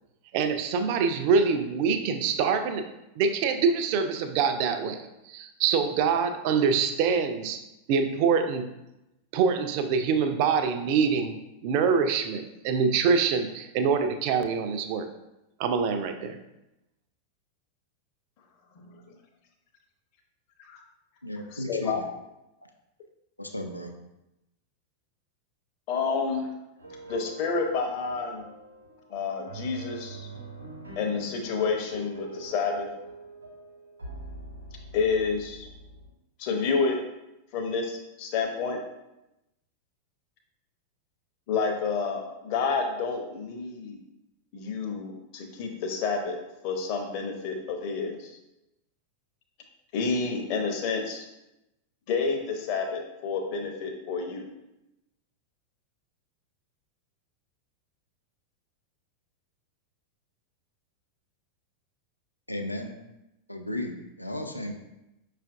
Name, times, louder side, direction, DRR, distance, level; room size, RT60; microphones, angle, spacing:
voice 1, 0.3-2.9 3.2-7.6 7.9-8.7 9.3-11.3 11.6-15.1 15.6-16.4, right 5 dB, 45° right, 7 dB, 0.4 m, -25 dB
voice 2, 18.8-19.2 20.7-20.8 21.7-22.0 25.9-26.5 27.1-28.4 29.1-30.2 31.0-32.9 34.9-35.7 36.4-37.0 37.5-38.8 41.5-44.0 44.5-46.4 46.6-48.3 49.9-51.3 52.1-54.4, left 4 dB, 45° left, 3 dB, 0.6 m, -29 dB
voice 3, 21.2-22.1 23.4-23.9 62.5-62.9 63.5-64.7, left 1 dB, 85° left, 3 dB, 0.4 m, -35 dB
sound 1, 26.8-36.1, right 2 dB, 80° right, 0.8 m, -44 dB
5.5 x 2.4 x 2.4 m, 0.92 s
figure-of-eight pair, 90°, 0 cm